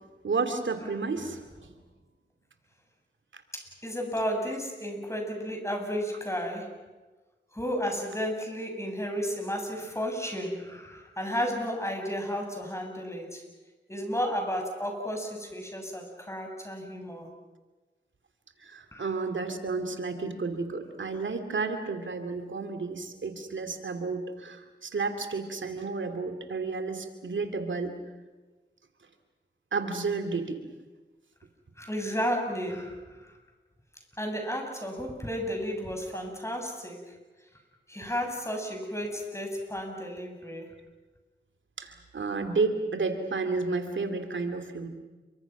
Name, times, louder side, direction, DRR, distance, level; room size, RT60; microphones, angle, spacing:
voice 1, 0.2-1.7 3.3-3.4 18.6-27.9 29.7-30.6 36.1-36.2 41.8-44.9, right 4 dB, 90° right, 7 dB, 2.7 m, -31 dB
voice 2, 3.5-6.7 7.5-13.4 13.9-17.3 18.9-19.1 31.8-33.4 34.2-37.1 37.9-40.7, equal, 15° left, 2 dB, 7.8 m, -33 dB
29.5 x 24.5 x 6.2 m, 1.2 s
cardioid pair, 45°, 19 cm